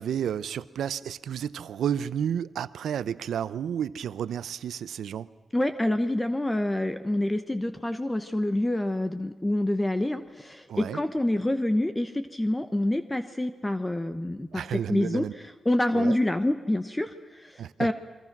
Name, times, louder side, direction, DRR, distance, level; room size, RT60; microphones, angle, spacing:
voice 1, 0.0-5.3 10.7-11.0 14.5-15.3 15.9-16.2 17.6-17.9, right 9 dB, 90° right, 16 dB, 0.7 m, -31 dB
voice 2, 5.5-17.9, left 1 dB, 15° left, 9 dB, 1.0 m, -27 dB
29.0 x 23.5 x 6.1 m, 1.2 s
cardioid pair, 85°, 0 cm